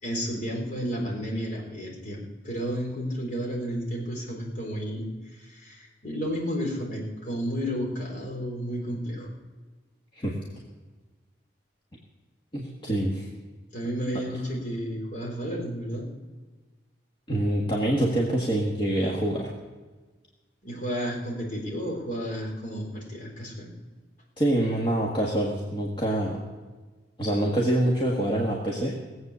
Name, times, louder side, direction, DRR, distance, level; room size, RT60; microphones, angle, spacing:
voice 1, 0.0-9.3 13.7-16.1 20.6-23.7, equal, 50° left, -2 dB, 4.0 m, -32 dB
voice 2, 12.5-13.3 17.3-19.5 24.4-26.4 27.2-28.9, right 1 dB, 30° left, -3 dB, 1.7 m, -25 dB
18.5 x 8.1 x 6.9 m, 1.3 s
head